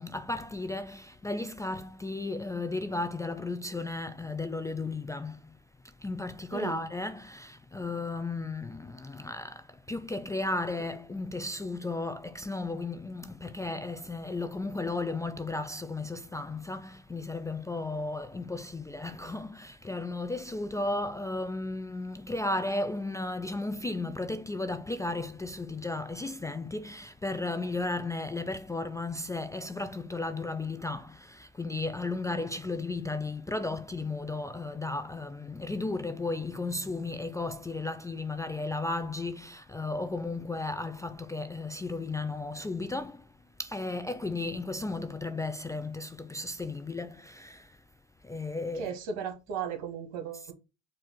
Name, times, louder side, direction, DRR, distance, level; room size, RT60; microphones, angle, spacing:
voice 1, 0.0-5.6 5.8-47.8 48.2-49.0, left 2 dB, 10° left, 0.3 m, -34 dB
voice 2, 48.7-50.5, right 7 dB, 70° right, 1.4 m, -36 dB
4.8 x 2.5 x 4.4 m
hypercardioid pair, 75°, 34 cm